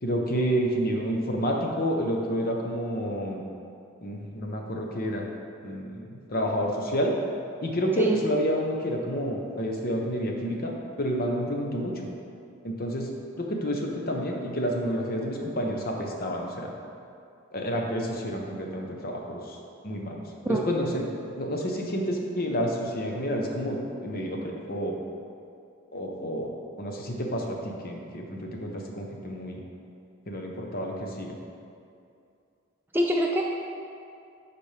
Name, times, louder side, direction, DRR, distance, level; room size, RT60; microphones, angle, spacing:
voice 1, 0.0-3.4 4.0-5.3 5.6-7.1 7.6-12.1 12.6-13.1 13.4-16.7 17.5-19.6 19.8-21.1 21.4-25.0 25.9-29.6 30.3-31.4, equal, 45° left, 0 dB, 0.8 m, -29 dB
voice 2, 32.9-33.4, equal, 10° right, 0 dB, 0.3 m, -24 dB
12.0 x 4.3 x 3.4 m, 2.5 s
head